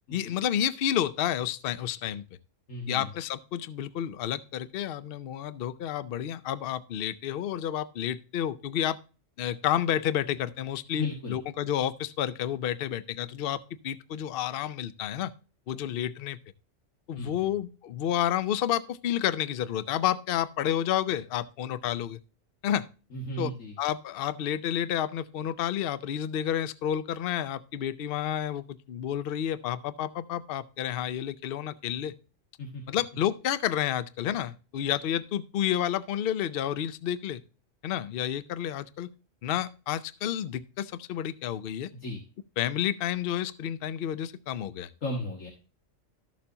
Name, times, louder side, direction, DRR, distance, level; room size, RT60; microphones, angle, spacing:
voice 1, 0.1-2.3 2.9-9.0 9.4-15.3 15.7-16.4 17.1-22.2 22.6-22.9 23.4-23.5 23.8-32.1 32.9-37.4 37.8-39.1 39.4-41.9 42.6-44.9, left 10 dB, 60° left, 16 dB, 0.7 m, -30 dB
voice 2, 2.7-3.1 10.9-11.4 17.1-17.5 23.1-23.8 32.6-32.8 41.9-42.2 45.0-45.5, left 1 dB, 85° left, 0 dB, 2.0 m, -35 dB
13.0 x 6.8 x 2.8 m, 0.35 s
omnidirectional pair, 1.3 m